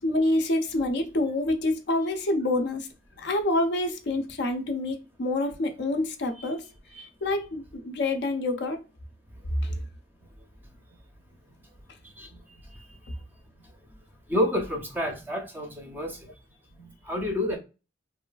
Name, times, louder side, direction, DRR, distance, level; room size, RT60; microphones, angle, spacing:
voice 1, 0.0-2.9 3.2-6.6 7.2-8.8, left 2 dB, 55° left, 0.4 m, -27 dB
voice 2, 14.3-16.2 16.8-17.6, left 1 dB, 10° right, 0.5 m, -30 dB
3.0 x 2.3 x 2.3 m
head